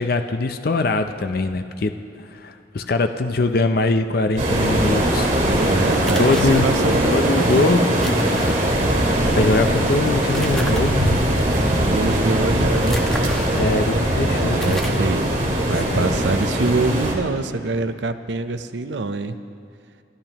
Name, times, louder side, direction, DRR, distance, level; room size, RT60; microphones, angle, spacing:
voice 1, 0.0-1.9 2.3-5.3 6.2-6.7 7.1-7.9 9.3-11.2 13.5-15.0 15.9-16.1, left 3 dB, 55° left, 8 dB, 0.5 m, -22 dB
sound 1, 4.4-17.1, right 1 dB, 45° right, 2.1 m, -20 dB
voice 2, 5.4-7.8 11.9-13.0 14.3-19.4, right 3 dB, 80° right, 10 dB, 0.6 m, -25 dB
sound 2, 6.1-6.6 8.0-8.5 10.3-10.8 12.8-13.5 14.0-14.1 14.6-15.1, equal, ahead, 1.0 m, -33 dB
28.5 x 10.5 x 2.9 m, 2.5 s
head